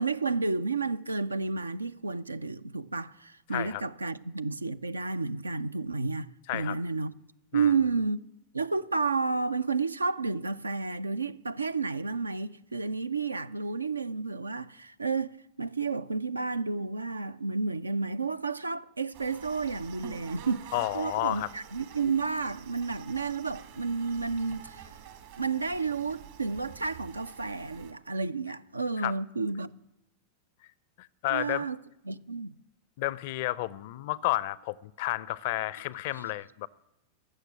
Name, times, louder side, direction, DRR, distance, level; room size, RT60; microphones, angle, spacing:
voice 1, 0.0-7.1 7.5-8.2 8.5-24.9 25.4-29.7 31.3-31.8 32.1-32.5 36.2-36.3, right 4 dB, 80° right, 0.4 m, -31 dB
voice 2, 3.5-3.8 6.5-6.8 7.5-7.7 20.7-21.5 29.0-29.2 31.0-31.6 33.0-36.7, left 18 dB, 50° left, 0.4 m, -31 dB
sound 1, 19.1-27.9, right 9 dB, 55° right, 1.5 m, -48 dB
15.0 x 6.6 x 9.7 m
figure-of-eight pair, 90°, 0 cm